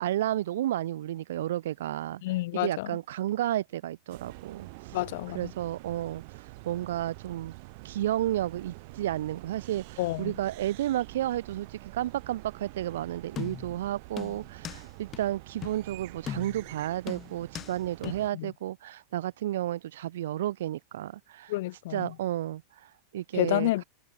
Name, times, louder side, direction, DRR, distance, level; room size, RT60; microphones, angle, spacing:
voice 1, 0.0-2.2 2.5-4.9 5.3-7.5 7.8-21.5 21.9-22.6 23.1-23.8, right 13 dB, 85° right, 1.5 m, -32 dB
voice 2, 2.2-2.9 4.9-5.4 10.0-10.3 18.0-18.5 21.5-22.1 23.3-23.8, left 18 dB, 55° left, 0.8 m, -29 dB
sound 1, 4.1-18.3, right 27 dB, 45° right, 4.8 m, -47 dB
sound 2, 13.4-13.8 14.2-14.8 15.1-15.2 15.6-15.8 16.3-16.7 17.1-17.7 18.0-18.1, left 10 dB, 20° left, 2.6 m, -39 dB
supercardioid pair, 175°, 0 cm